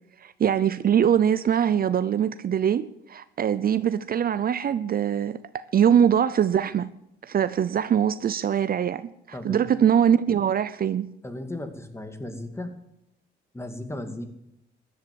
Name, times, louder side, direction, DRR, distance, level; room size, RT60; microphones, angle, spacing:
voice 1, 0.2-6.9 7.2-11.1, right 8 dB, 50° right, 0.7 m, -23 dB
voice 2, 9.3-9.7 11.2-12.7 13.5-14.3, left 1 dB, 15° left, 2.3 m, -35 dB
14.5 x 11.0 x 7.7 m
cardioid pair, 90°, 20 cm